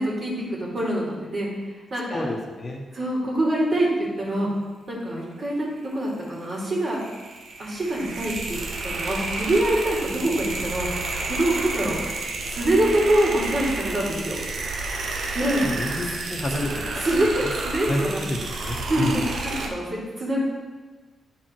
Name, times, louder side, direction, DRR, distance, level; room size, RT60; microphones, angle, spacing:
voice 1, 0.0-1.5 1.9-2.3 2.9-4.5 4.9-5.7 5.9-7.0 7.6-10.9 11.2-12.0 12.5-14.4 15.3-15.6 16.5-16.6 17.0-18.2 18.9-19.1 19.7-20.4, right 1 dB, 50° right, -4 dB, 2.6 m, -25 dB
voice 2, 2.1-2.8 15.6-17.0 17.4-17.5 17.9-19.3, left 1 dB, 40° left, 1 dB, 1.1 m, -29 dB
sound 1, 6.6-19.7, right 2 dB, 65° right, 0.9 m, -31 dB
9.8 x 4.6 x 4.5 m, 1.4 s
cardioid pair, 85°, 0 cm